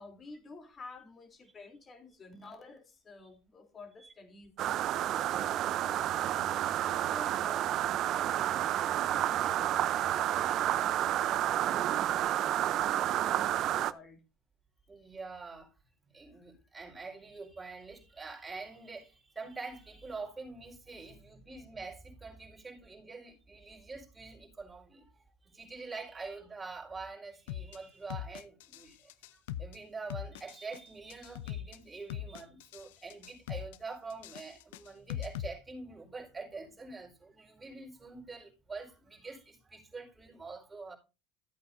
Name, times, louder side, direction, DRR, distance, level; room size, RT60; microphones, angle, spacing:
voice 1, 0.0-14.2 15.1-15.2 16.3-16.4, left 3 dB, 30° left, 3.3 m, -52 dB
sound 1, 4.6-13.9, right 12 dB, 50° right, 0.7 m, -30 dB
voice 2, 14.9-15.7 16.1-41.0, right 4 dB, 15° right, 4.7 m, -45 dB
sound 2, 27.5-27.8 28.1-28.8 29.1-29.8 30.1-30.8 31.1-31.8 32.1-32.8 33.1-33.8 34.1-35.5, left 11 dB, 80° left, 0.7 m, -40 dB
14.5 x 8.5 x 2.7 m
supercardioid pair, 95°, 0 cm